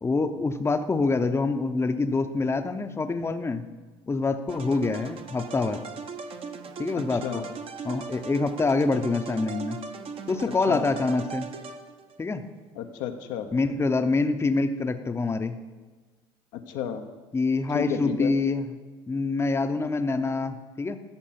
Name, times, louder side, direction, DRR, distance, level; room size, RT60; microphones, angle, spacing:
voice 1, 0.0-3.7 4.1-5.8 6.8-7.4 7.8-9.8 10.3-11.5 12.2-12.4 13.5-15.6 17.3-18.7 19.1-21.0, left 3 dB, 20° left, 8 dB, 0.7 m, -26 dB
sound 1, 4.5-12.2, right 5 dB, 45° right, 0.9 m, -39 dB
voice 2, 6.9-7.5 10.7-10.9 12.8-13.5 16.5-17.0 17.7-18.3, left 8 dB, 80° left, 5 dB, 0.8 m, -32 dB
13.5 x 4.5 x 5.8 m, 1.3 s
supercardioid pair, 75°, 13 cm